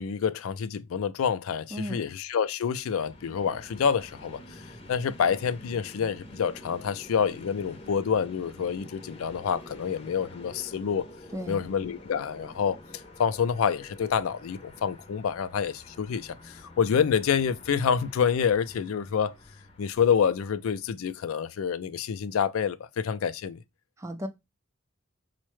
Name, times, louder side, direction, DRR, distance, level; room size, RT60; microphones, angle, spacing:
voice 1, 0.0-4.4 4.9-11.1 11.5-12.8 13.2-19.3 19.8-23.6, left 7 dB, 75° left, 0.4 m, -27 dB
voice 2, 1.7-2.0 11.3-11.7 24.0-24.3, equal, 15° right, 0.3 m, -34 dB
Train, 2.8-20.9, left 1 dB, 30° left, 0.6 m, -48 dB
4.6 x 2.1 x 3.0 m
head